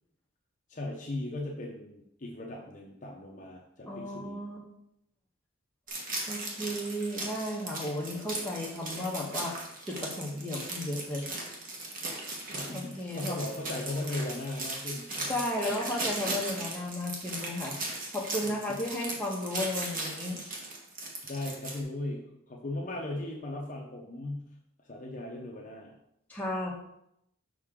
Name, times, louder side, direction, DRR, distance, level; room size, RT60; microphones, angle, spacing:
voice 1, 0.7-4.4 8.0-8.5 12.5-15.4 18.4-18.6 21.3-24.5 24.8-25.9, left 2 dB, 35° left, -1 dB, 0.8 m, -38 dB
voice 2, 3.9-4.6 6.3-9.5 9.8-11.2 12.7-13.4 15.2-20.4 26.3-26.7, left 1 dB, 10° left, -4 dB, 1.2 m, -34 dB
sound 1, 5.9-21.8, right 2 dB, 40° right, 1.3 m, -37 dB
6.6 x 5.5 x 3.7 m, 0.77 s
head